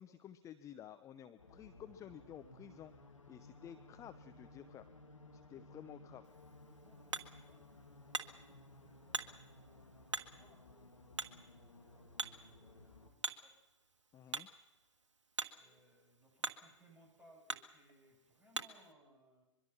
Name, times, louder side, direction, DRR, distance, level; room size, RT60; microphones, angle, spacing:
voice 1, 0.0-2.9 3.3-4.9 5.3-6.3 14.1-14.5, left 10 dB, 20° left, 10 dB, 0.9 m, -53 dB
sound 1, 1.4-13.1, left 2 dB, 80° left, 2.3 m, -58 dB
Hammer, 6.2-18.9, right 4 dB, 75° right, 1.5 m, -47 dB
voice 2, 6.6-7.7 8.0-10.9 11.2-11.5 11.8-13.6 14.2-14.4 15.5-19.4, right 1 dB, 10° right, -1 dB, 7.6 m, -68 dB
24.0 x 23.0 x 5.9 m, 1.0 s
figure-of-eight pair, 105°, 16 cm